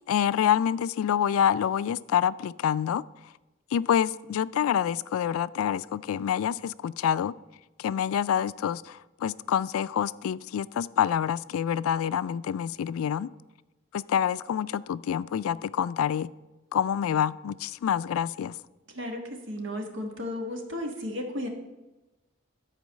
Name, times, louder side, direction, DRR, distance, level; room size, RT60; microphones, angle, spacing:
voice 1, 0.1-3.0 3.7-7.4 7.8-13.3 13.9-16.3 16.7-18.5, left 9 dB, 90° left, 18 dB, 0.3 m, -27 dB
voice 2, 19.5-21.5, left 1 dB, 65° right, 3 dB, 1.6 m, -34 dB
12.5 x 4.6 x 6.3 m, 1.1 s
head